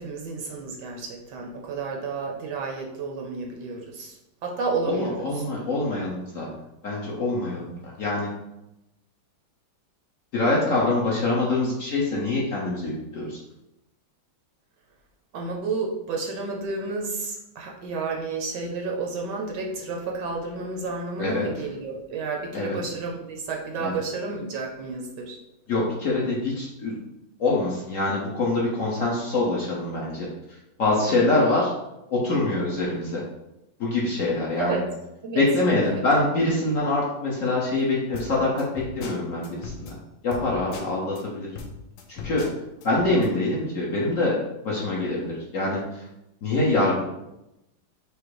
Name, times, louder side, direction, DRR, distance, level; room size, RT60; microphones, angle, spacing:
voice 1, 0.0-4.1 4.4-5.4 15.3-25.4 31.0-31.5 34.6-34.8 35.2-35.4 35.8-36.0, right 4 dB, 70° right, 0 dB, 1.3 m, -31 dB
voice 2, 4.9-6.5 6.8-8.3 10.3-13.4 21.2-21.5 22.5-22.8 23.8-23.9 25.7-27.0 27.4-30.3 30.8-31.7 32.1-33.2 33.8-34.8 35.3-39.9 40.2-41.5 42.1-42.5 42.8-46.0 46.4-47.0, left 2 dB, 55° left, -5 dB, 1.0 m, -25 dB
sound 1, 38.1-41.2 41.5-43.3, left 4 dB, 80° left, 1.4 m, -38 dB
5.1 x 2.0 x 4.6 m, 0.89 s
omnidirectional pair, 2.1 m